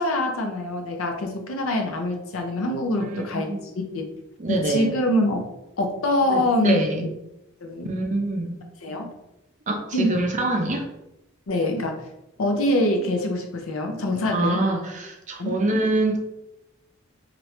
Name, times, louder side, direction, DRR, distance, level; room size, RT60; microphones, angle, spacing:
voice 1, 0.0-3.5 3.9-4.1 4.5-5.5 5.8-7.1 7.6-7.9 8.8-9.1 9.9-10.2 11.5-12.0 12.4-14.6 15.4-15.6, left 1 dB, 85° left, 3 dB, 0.6 m, -24 dB
voice 2, 3.0-3.6 4.4-4.9 6.3-7.1 7.8-8.5 9.7-10.9 14.3-16.2, right 2 dB, 35° right, 2 dB, 0.5 m, -25 dB
2.9 x 2.5 x 3.1 m, 0.89 s
head